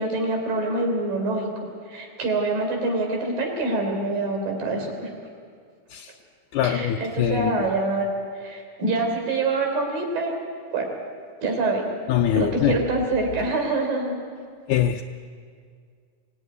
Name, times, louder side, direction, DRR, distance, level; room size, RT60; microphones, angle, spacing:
voice 1, 0.0-1.5 1.9-5.1 6.6-8.1 8.4-10.4 10.7-10.9 11.4-11.9 12.4-14.2, right 2 dB, 90° right, 2 dB, 5.4 m, -25 dB
voice 2, 6.5-7.7 12.1-12.8 14.7-15.0, left 10 dB, 75° left, 4 dB, 2.1 m, -23 dB
24.5 x 17.0 x 9.5 m, 2.1 s
omnidirectional pair, 3.9 m